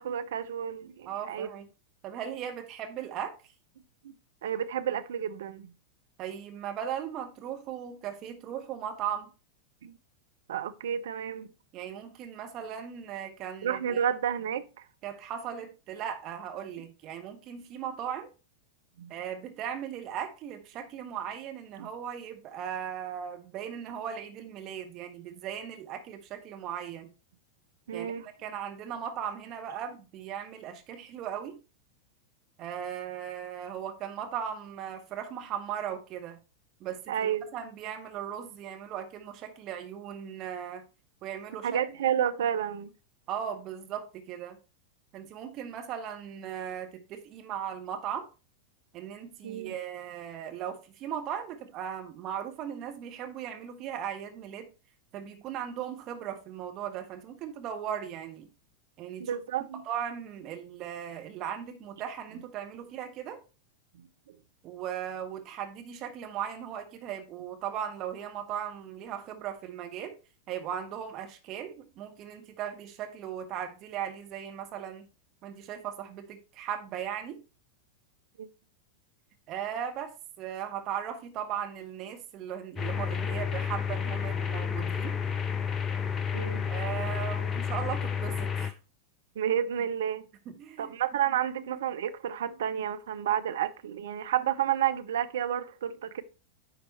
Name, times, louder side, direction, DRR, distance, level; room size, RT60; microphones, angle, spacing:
voice 1, 0.0-1.5 4.0-4.1 4.4-5.7 9.8-10.0 10.5-11.5 13.6-14.8 19.0-19.1 21.8-21.9 27.9-28.3 37.1-37.5 41.6-42.9 49.4-49.7 59.2-59.8 64.3-64.4 78.4-78.5 86.3-86.7 89.4-90.3 90.8-96.2, right 9 dB, 60° right, 0.6 m, -30 dB
voice 2, 1.1-1.7 2.0-3.4 6.2-9.3 11.7-14.0 15.0-18.3 19.1-27.1 27.9-28.1 28.4-31.6 32.6-36.4 36.8-40.8 41.2-41.8 43.3-44.6 45.1-48.3 48.9-54.7 55.1-58.5 59.0-59.3 59.8-63.4 64.6-70.2 70.5-75.1 75.4-77.4 79.5-85.2 86.7-88.8 90.5-90.9, right 9 dB, 35° right, 1.3 m, -37 dB
sound 1, 82.8-88.7, left 7 dB, 20° left, 0.6 m, -31 dB
9.8 x 4.0 x 4.4 m
figure-of-eight pair, 90°, 0 cm